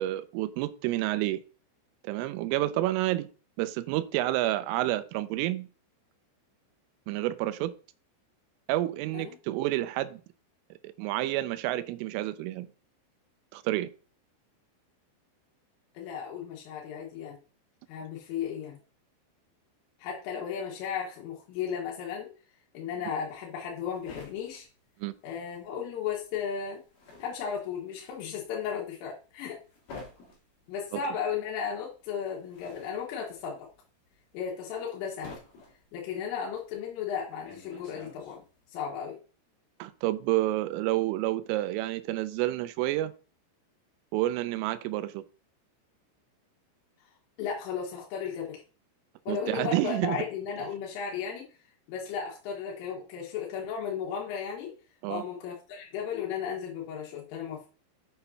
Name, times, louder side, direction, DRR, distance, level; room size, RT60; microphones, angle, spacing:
voice 1, 0.0-1.4 2.0-3.3 3.6-5.7 7.1-7.7 8.7-10.2 10.8-12.7 13.5-13.9 25.0-25.1 39.8-43.1 44.1-45.2 49.3-50.2 55.0-55.2, right 15 dB, 85° right, 12 dB, 3.1 m, -29 dB
voice 2, 16.0-17.4 17.9-18.8 20.0-22.3 22.7-24.7 25.2-26.8 27.2-29.6 30.7-33.6 34.3-35.4 35.9-38.4 38.7-39.2 47.4-48.6 49.3-51.5 51.9-54.7 55.1-57.6, left 7 dB, 85° left, -3 dB, 4.1 m, -35 dB
sound 1, 23.2-25.8 26.0-38.7, left 3 dB, 50° left, 3.0 m, -50 dB
8.6 x 6.8 x 2.8 m, 0.37 s
omnidirectional pair, 5.7 m